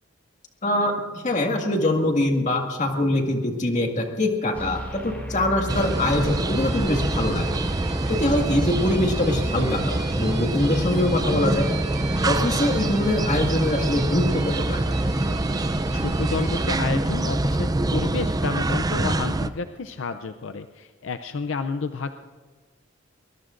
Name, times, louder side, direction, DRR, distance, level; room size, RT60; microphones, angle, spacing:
voice 1, 0.6-0.9 1.2-7.6 8.1-11.7 12.3-14.8, left 1 dB, 40° left, 3 dB, 1.9 m, -23 dB
sound 1, 4.5-18.1, equal, 10° left, 2.4 m, -33 dB
sound 2, 5.7-19.5, right 2 dB, 20° right, 0.4 m, -26 dB
sound 3, 5.7-16.7, right 5 dB, 55° right, 2.4 m, -39 dB
voice 2, 15.9-22.2, left 4 dB, 70° left, 9 dB, 0.5 m, -30 dB
23.0 x 21.0 x 2.6 m, 1.5 s
head